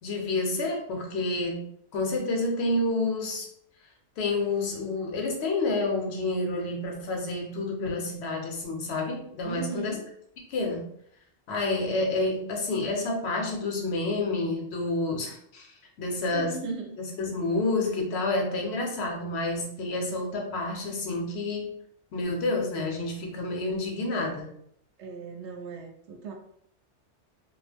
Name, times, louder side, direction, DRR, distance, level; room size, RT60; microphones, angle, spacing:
voice 1, 0.0-3.5 4.2-10.0 10.5-10.9 11.5-15.7 16.0-16.6 17.2-21.7 22.1-24.5, left 2 dB, 65° left, 1 dB, 0.9 m, -29 dB
voice 2, 9.4-10.0 16.3-17.0 25.0-26.3, right 4 dB, 75° right, 2 dB, 0.9 m, -37 dB
2.3 x 2.0 x 3.3 m, 0.68 s
omnidirectional pair, 1.2 m